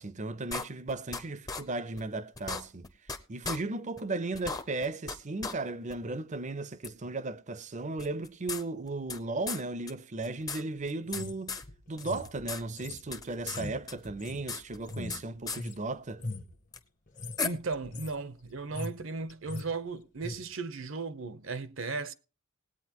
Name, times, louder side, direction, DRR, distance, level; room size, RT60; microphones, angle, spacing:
voice 1, 0.0-2.9 3.3-11.6 11.9-16.2, right 2 dB, 35° right, 0.6 m, -36 dB
sound 1, 0.5-1.2 1.5-1.6 2.0-2.1 2.4-3.2 3.4-3.6 4.0-4.1 4.3-5.2 5.4-5.5 5.9-6.0 6.8-6.9 8.0-9.2 9.5-9.6 9.9-10.0 10.2-11.2 11.5-11.6 12.0-12.6 12.9-13.6 13.9-15.2 15.5-15.6 16.7-16.8 17.4-17.5, left 4 dB, 20° left, 0.7 m, -36 dB
sound 2, 11.1-15.8 16.1-16.6 17.1-17.4 17.7-18.2 18.5-19.0 19.3-19.7 20.2-20.4, left 2 dB, 40° left, 1.0 m, -41 dB
voice 2, 17.4-22.1, right 3 dB, 65° right, 0.8 m, -36 dB
19.5 x 8.8 x 3.0 m
head